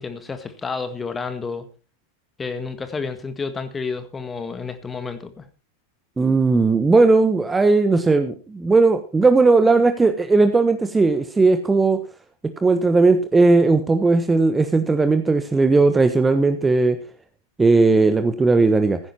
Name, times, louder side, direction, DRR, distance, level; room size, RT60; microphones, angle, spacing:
voice 1, 0.0-1.7 2.4-5.5, left 4 dB, 15° left, 10 dB, 1.8 m, -30 dB
voice 2, 6.2-12.0 12.6-17.0 17.6-19.0, right 3 dB, 10° right, 8 dB, 1.2 m, -17 dB
15.5 x 10.0 x 4.3 m, 0.34 s
figure-of-eight pair, 90°, 0 cm